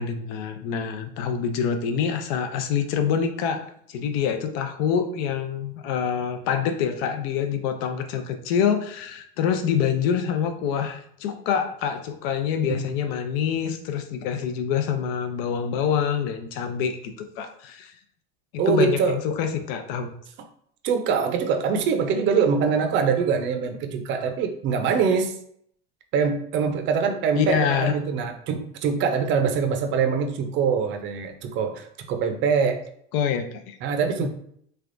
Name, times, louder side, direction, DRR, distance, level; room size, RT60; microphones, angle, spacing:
voice 1, 0.0-17.9 18.7-20.1 27.3-27.9 33.1-33.8 34.2-34.3, left 7 dB, 75° left, 8 dB, 0.6 m, -26 dB
voice 2, 18.6-19.2 20.8-25.4 26.1-32.8 33.8-34.3, right 6 dB, 40° right, 6 dB, 0.5 m, -23 dB
3.4 x 3.4 x 2.5 m, 0.66 s
cardioid pair, 155°, 29 cm